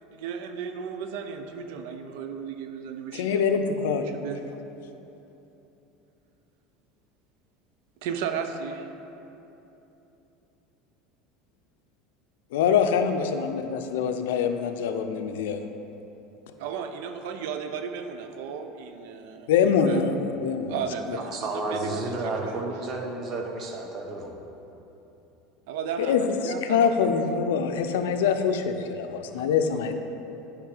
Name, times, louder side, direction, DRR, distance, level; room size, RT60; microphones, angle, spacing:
voice 1, 0.0-3.4 4.1-4.6 8.0-8.9 16.6-20.0 20.7-21.3 21.5-22.6 25.7-27.1, right 6 dB, 75° right, 7 dB, 0.4 m, -34 dB
voice 2, 3.1-4.1 12.5-15.6 19.5-20.7 21.1-21.2 26.0-29.9, left 6 dB, 90° left, 7 dB, 0.4 m, -24 dB
voice 3, 21.2-24.3 29.3-29.4 29.7-29.8, right 2 dB, 40° right, 1 dB, 0.9 m, -32 dB
9.4 x 3.2 x 4.9 m, 3.0 s
supercardioid pair, 125°, 0 cm